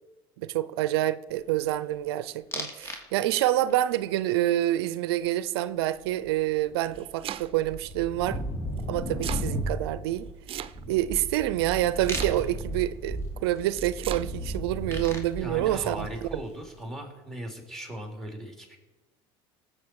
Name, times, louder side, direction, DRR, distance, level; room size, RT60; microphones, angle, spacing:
voice 1, 0.4-8.4 8.9-10.3 10.9-16.1, right 14 dB, 90° right, 0.5 m, -27 dB
sound 1, 2.5-3.0 3.3-3.8 6.2-6.3 6.6-16.6, equal, 20° left, 2.5 m, -35 dB
Domestic sounds home sounds, 6.7-7.7 8.8-9.5 10.5-11.1 12.0-12.7 13.7-14.3, right 11 dB, 45° right, 0.6 m, -37 dB
voice 2, 15.4-18.8, right 1 dB, 5° left, 3.5 m, -38 dB
18.5 x 7.7 x 4.7 m
supercardioid pair, 95°, 13 cm